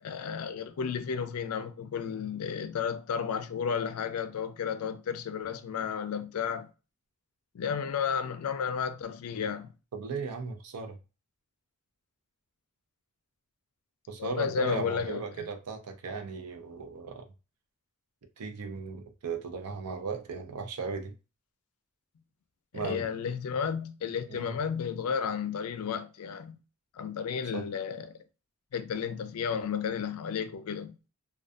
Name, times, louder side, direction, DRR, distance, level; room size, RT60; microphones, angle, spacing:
voice 1, 0.0-6.7 7.5-9.7 14.2-15.4 22.7-26.6 26.9-28.2 28.7-31.0, left 7 dB, 70° left, 0.4 m, -33 dB
voice 2, 9.9-11.0 14.1-17.2 18.4-21.1 22.7-23.1 24.3-24.5 27.5-27.7, right 5 dB, 85° right, 0.5 m, -36 dB
2.5 x 2.3 x 2.3 m
head